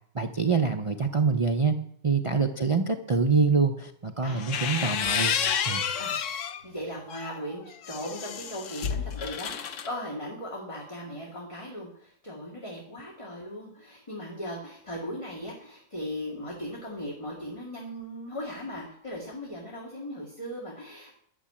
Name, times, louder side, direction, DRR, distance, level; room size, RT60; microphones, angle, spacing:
voice 1, 0.1-1.7 2.0-5.4 5.7-5.8, right 4 dB, 35° right, 5 dB, 0.6 m, -25 dB
sound 1, 4.3-6.6 7.1-9.9, left 8 dB, 70° left, 1.1 m, -30 dB
voice 2, 6.6-21.1, equal, 25° left, -3 dB, 2.1 m, -38 dB
11.5 x 6.8 x 8.6 m, 0.67 s
omnidirectional pair, 1.3 m